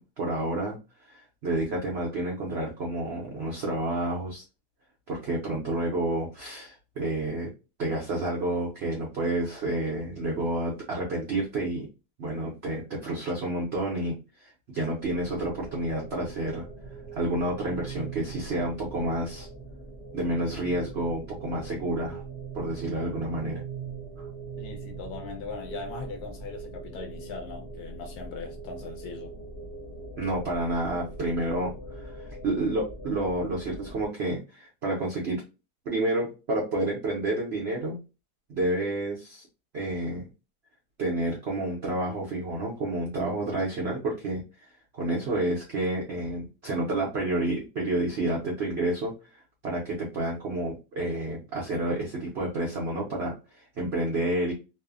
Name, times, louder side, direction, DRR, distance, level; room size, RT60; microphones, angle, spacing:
voice 1, 0.0-4.4 5.1-7.5 7.8-11.9 12.2-16.7 17.1-19.5 20.1-22.2 22.5-23.6 24.2-24.3 30.2-35.4 35.9-38.0 38.5-39.5 39.7-40.3 41.0-49.1 49.6-54.5, right 1 dB, 70° right, 0.6 m, -30 dB
sound 1, 15.0-34.1, right 4 dB, 40° left, 0.7 m, -41 dB
voice 2, 24.6-29.3, left 4 dB, 70° left, 0.9 m, -39 dB
3.1 x 2.0 x 2.3 m
omnidirectional pair, 1.9 m